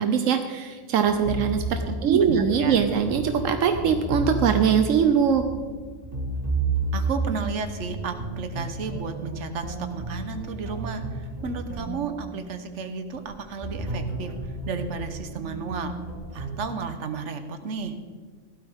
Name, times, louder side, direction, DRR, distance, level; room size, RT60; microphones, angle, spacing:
voice 1, 0.0-5.4, right 7 dB, 85° right, 7 dB, 1.1 m, -22 dB
sound 1, 1.0-16.6, right 2 dB, 30° right, 2.4 m, -32 dB
voice 2, 2.0-2.8 6.9-11.0 11.4-14.3 14.7-15.9 16.3-17.9, right 5 dB, 70° right, 8 dB, 1.3 m, -32 dB
16.0 x 12.5 x 3.6 m, 1.5 s
omnidirectional pair, 1.3 m